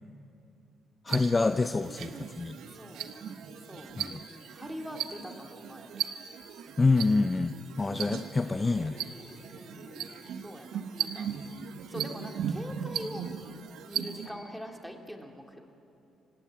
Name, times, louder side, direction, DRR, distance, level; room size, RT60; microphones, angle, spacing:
voice 1, 1.0-2.6 4.0-4.2 6.8-9.0, left 3 dB, 25° left, 8 dB, 0.7 m, -27 dB
sound 1, 1.1-14.3, right 8 dB, 80° right, 1.4 m, -38 dB
voice 2, 2.7-3.3 3.6-3.9 4.3-6.0 9.5-10.2 10.4-11.3 11.9-13.3 13.9-15.6, equal, ahead, 2 dB, 2.7 m, -43 dB
sound 2, 7.8-12.0 14.1-14.4, left 2 dB, 45° left, 6.2 m, -55 dB
27.5 x 18.0 x 8.8 m, 2.7 s
cardioid pair, 90°, 0 cm